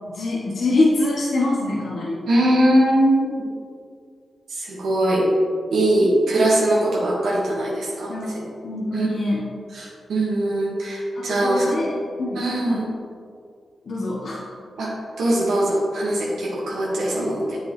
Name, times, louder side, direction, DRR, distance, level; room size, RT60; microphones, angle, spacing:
voice 1, 0.1-2.2 8.1-8.3 8.6-9.5 11.1-11.9 12.2-12.8 13.8-14.4 17.2-17.3, left 2 dB, 65° left, -5 dB, 1.2 m, -24 dB
voice 2, 2.3-3.5 4.5-5.3 5.7-8.4 8.9-9.1 9.7-11.8 12.3-12.9 14.8-14.9 15.2-17.6, right 1 dB, 85° right, -5 dB, 1.7 m, -21 dB
8.1 x 6.2 x 3.2 m, 2.2 s
cardioid pair, 50°, 0 cm